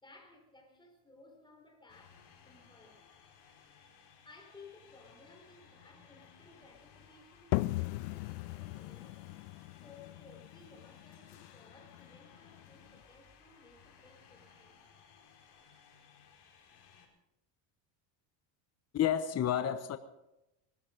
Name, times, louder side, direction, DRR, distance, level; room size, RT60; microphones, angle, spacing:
voice 1, 0.0-3.0 4.2-9.2 9.8-14.8, left 3 dB, 10° left, 1 dB, 4.5 m, -59 dB
sound 1, 1.9-17.1, left 7 dB, 50° left, 4.6 m, -60 dB
sound 2, 7.5-13.0, left 20 dB, 85° left, 0.7 m, -39 dB
voice 2, 18.9-20.0, left 10 dB, 30° left, 10 dB, 1.1 m, -30 dB
21.0 x 13.0 x 5.3 m, 0.92 s
supercardioid pair, 115°, 48 cm